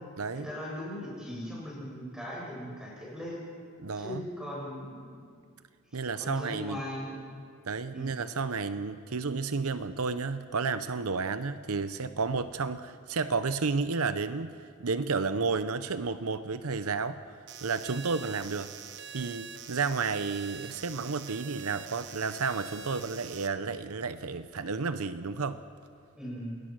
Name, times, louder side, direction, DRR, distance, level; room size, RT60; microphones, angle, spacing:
voice 1, 0.3-3.4 3.9-5.3 6.2-7.2 7.9-8.1 26.1-26.6, equal, 5° right, -5 dB, 7.6 m, -39 dB
voice 2, 3.8-4.2 5.9-6.8 7.6-14.5 14.8-17.2 17.6-18.7 19.1-25.6, right 4 dB, 75° right, 12 dB, 0.8 m, -31 dB
sound 1, 17.5-23.5, right 7 dB, 50° right, 1.1 m, -45 dB
28.5 x 19.5 x 6.2 m, 2.2 s
head